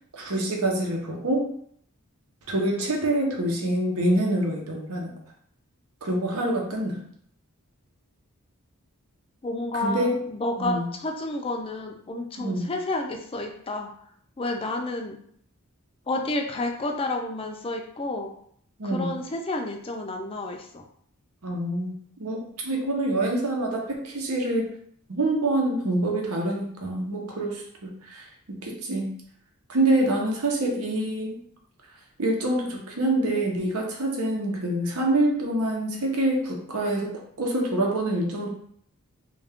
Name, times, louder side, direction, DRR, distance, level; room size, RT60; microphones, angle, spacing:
voice 1, 0.1-1.5 2.5-5.1 6.0-7.0 9.8-10.2 10.6-10.9 12.4-12.6 18.8-19.1 21.4-21.9 22.2-24.7 25.1-29.1 29.7-31.4 32.2-38.5, right 1 dB, 80° right, 0 dB, 0.9 m, -26 dB
voice 2, 9.4-13.9 14.4-15.2 16.1-18.4 18.8-20.8, left 2 dB, 25° left, 3 dB, 0.4 m, -30 dB
3.3 x 2.4 x 3.5 m, 0.64 s
head